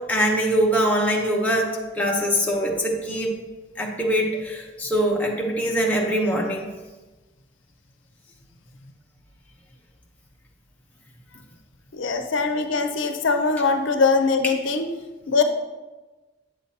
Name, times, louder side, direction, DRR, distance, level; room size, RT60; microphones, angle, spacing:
voice 1, 0.0-3.4 3.8-6.7, equal, 10° left, -2 dB, 0.8 m, -23 dB
voice 2, 11.9-14.9 15.3-15.4, left 4 dB, 75° left, 6 dB, 0.6 m, -22 dB
8.3 x 6.6 x 2.8 m, 1.2 s
head